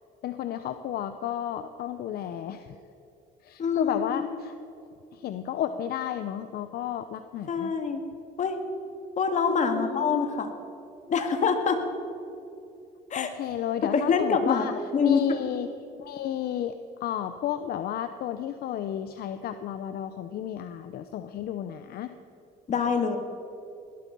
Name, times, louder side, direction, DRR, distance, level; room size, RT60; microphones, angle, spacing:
voice 1, 0.2-2.8 3.4-4.5 5.1-7.7 9.6-10.2 13.2-14.7 15.0-15.7 16.0-22.1, left 10 dB, 65° left, 9 dB, 0.8 m, -32 dB
voice 2, 3.6-4.3 7.5-8.0 8.4-8.6 9.2-10.5 11.1-11.8 13.1-13.3 13.9-14.7 14.9-15.4 22.7-23.2, left 5 dB, 45° left, 6 dB, 2.1 m, -25 dB
19.0 x 13.0 x 5.5 m, 2.7 s
cardioid pair, 110°, 17 cm